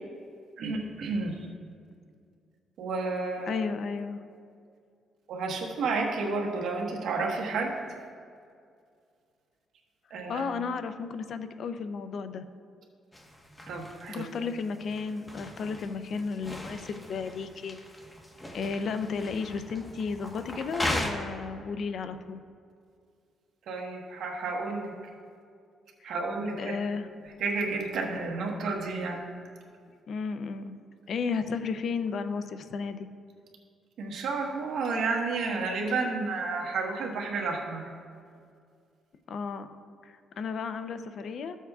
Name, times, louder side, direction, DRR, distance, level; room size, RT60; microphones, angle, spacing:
voice 1, 0.6-1.4 2.8-3.6 5.3-8.0 10.1-10.4 13.7-14.3 23.7-24.9 26.0-26.7 27.4-29.3 34.0-37.8, right 3 dB, 75° right, 0 dB, 1.3 m, -31 dB
voice 2, 3.5-4.2 10.3-12.4 14.1-17.8 18.5-22.4 26.0-26.1 26.6-27.1 30.1-30.8 31.1-33.1 39.3-39.8 40.0-41.6, left 5 dB, 60° left, 10 dB, 0.5 m, -33 dB
sound 1, 13.1-21.1, left 1 dB, 15° left, 1.2 m, -38 dB
14.5 x 7.2 x 2.4 m, 2.3 s
cardioid pair, 90°, 0 cm